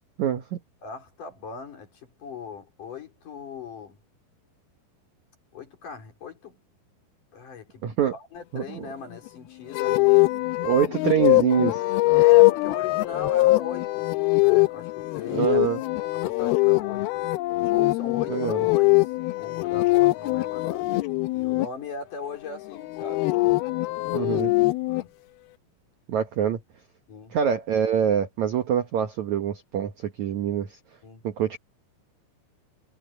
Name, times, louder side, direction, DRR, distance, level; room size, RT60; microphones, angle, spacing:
voice 1, 0.2-0.6 7.8-8.1 8.5-8.9 10.6-11.8 15.3-15.8 18.3-18.6 24.1-24.5 26.1-26.6 27.3-30.8 31.2-31.6, right 9 dB, 85° right, 1.6 m, -25 dB
voice 2, 0.8-4.0 5.5-6.6 7.3-10.3 12.1-15.6 16.1-17.3 17.7-20.9 21.3-23.3 24.1-24.3 24.9-25.1 27.1-27.3 31.0-31.2, left 5 dB, 45° left, 5.0 m, -39 dB
sound 1, 9.7-21.7 22.8-25.0, left 22 dB, 85° left, 2.3 m, -22 dB
omnidirectional pair, 5.2 m